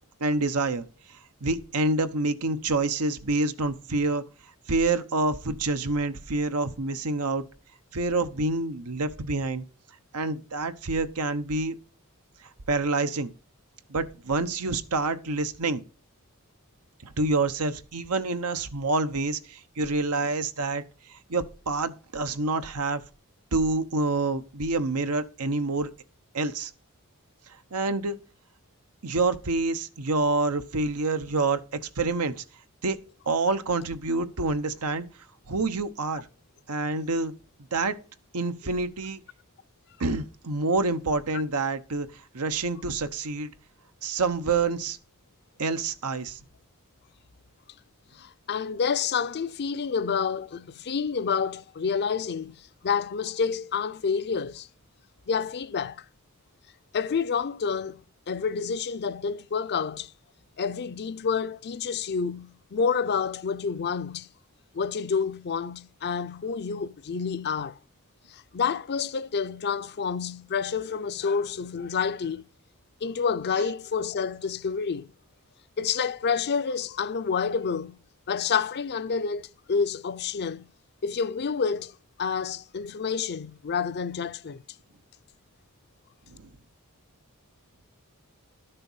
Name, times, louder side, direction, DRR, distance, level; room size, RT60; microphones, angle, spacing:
voice 1, 0.2-0.9 1.4-4.2 4.7-7.4 7.9-9.6 10.1-11.8 12.7-13.3 13.9-15.8 17.0-20.8 21.1-23.0 23.5-25.9 26.3-26.7 27.7-28.2 29.0-31.6 32.0-32.4 32.8-33.0 33.3-35.1 35.5-36.3 36.7-37.3 37.7-38.0 38.3-39.2 40.0-42.1 42.3-43.5 44.0-45.0 45.6-46.4 86.3-86.5, right 3 dB, 85° right, 1.0 m, -27 dB
voice 2, 48.1-54.7 55.3-56.0 56.9-58.0 58.3-60.1 60.6-64.3 64.7-67.8 68.3-72.5 73.0-75.1 75.8-78.0 78.3-80.7 81.0-81.9 82.2-84.6, left 6 dB, 50° left, 0.5 m, -29 dB
12.0 x 6.7 x 5.6 m
head